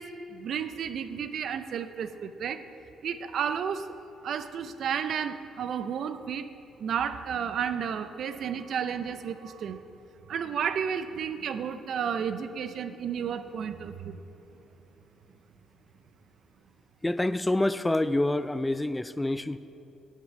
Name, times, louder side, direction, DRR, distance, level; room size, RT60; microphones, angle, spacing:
voice 1, 0.0-2.7 3.0-3.9 4.2-6.5 6.8-9.8 10.3-14.2, right 7 dB, 65° right, 11 dB, 0.5 m, -32 dB
voice 2, 17.0-19.6, left 1 dB, 15° left, 14 dB, 0.3 m, -27 dB
8.1 x 7.6 x 5.7 m, 2.9 s
supercardioid pair, 65°, 0 cm